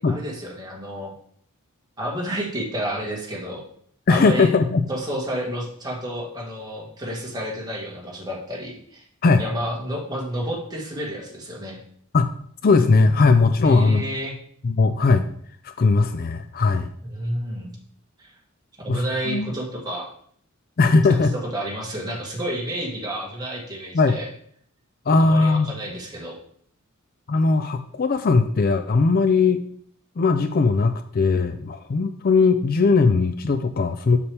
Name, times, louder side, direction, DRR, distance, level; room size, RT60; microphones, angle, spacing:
voice 1, 0.1-1.1 2.0-3.6 4.1-4.5 4.9-9.0 9.4-11.8 13.6-14.3 17.1-17.7 18.2-18.3 18.8-20.1 21.1-21.2 21.5-24.3 25.2-26.4, equal, 20° right, -2 dB, 1.7 m, -30 dB
voice 2, 4.1-4.8 9.2-9.4 12.1-12.3 12.6-14.0 14.6-15.2 15.8-16.9 18.9-19.5 20.8-21.3 23.9-24.2 25.1-25.7 27.3-29.6 30.2-34.2, left 4 dB, 45° left, 9 dB, 0.4 m, -19 dB
6.9 x 6.8 x 3.4 m, 0.62 s
head